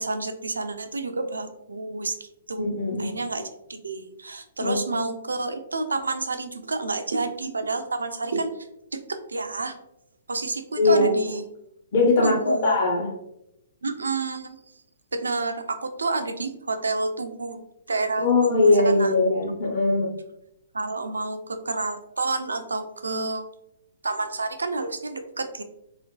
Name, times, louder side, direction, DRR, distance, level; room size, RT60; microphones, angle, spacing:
voice 1, 0.0-8.5 8.9-9.7 10.3-11.5 12.2-12.8 13.8-14.6 15.1-17.6 17.9-19.1 20.7-23.4 24.0-25.6, right 3 dB, 90° right, 8 dB, 0.3 m, -29 dB
voice 2, 2.6-3.1 4.6-5.1 10.8-11.1 11.9-13.1 18.2-20.2, left 2 dB, 55° left, -3 dB, 0.8 m, -21 dB
2.5 x 2.2 x 2.2 m, 0.80 s
hypercardioid pair, 130°, 0 cm